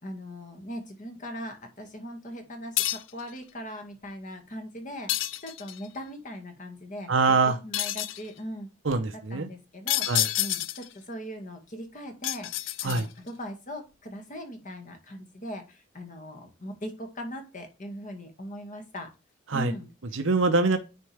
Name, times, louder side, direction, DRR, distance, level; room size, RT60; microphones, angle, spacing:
voice 1, 0.0-7.1 7.5-8.7 9.3-10.1 10.4-19.1 19.5-20.2, equal, 45° left, 5 dB, 2.0 m, -40 dB
sound 1, 2.8-3.2 5.1-5.9 7.7-8.3 9.9-10.9 12.2-13.3, left 15 dB, 85° left, 0.5 m, -29 dB
voice 2, 7.1-7.6 8.8-9.5 10.1-10.3 12.8-13.1 19.5-19.7 20.1-20.8, right 3 dB, 85° right, 6 dB, 0.8 m, -24 dB
9.5 x 4.6 x 3.4 m, 0.30 s
head